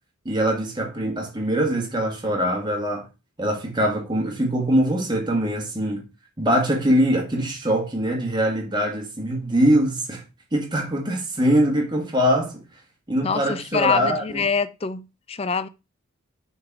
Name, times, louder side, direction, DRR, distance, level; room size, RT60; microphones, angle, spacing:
voice 1, 0.2-3.1 3.4-6.0 6.4-10.2 10.5-12.6 13.1-14.4, equal, 20° right, 1.6 m, -22 dB
voice 2, 13.2-15.7, left 5 dB, 30° left, 0.4 m, -25 dB
6.4 x 3.9 x 6.0 m
head